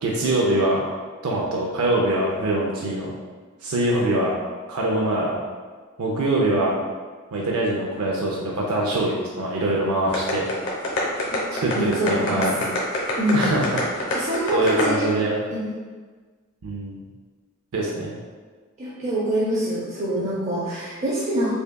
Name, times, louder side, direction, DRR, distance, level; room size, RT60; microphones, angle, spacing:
voice 1, 0.0-0.8 1.2-3.1 3.6-4.3 4.7-5.4 6.0-6.8 7.3-10.5 11.5-12.5 13.3-14.2 14.5-15.4 16.6-17.0 17.7-18.2, right 1 dB, 90° right, -3 dB, 0.5 m, -23 dB
sound 1, 10.1-15.0, left 2 dB, 60° left, 0.9 m, -25 dB
voice 2, 11.7-12.5 13.2-13.5 14.1-15.1 15.5-15.7 18.8-21.5, right 1 dB, 35° right, -8 dB, 0.6 m, -25 dB
5.2 x 2.3 x 2.2 m, 1.5 s
head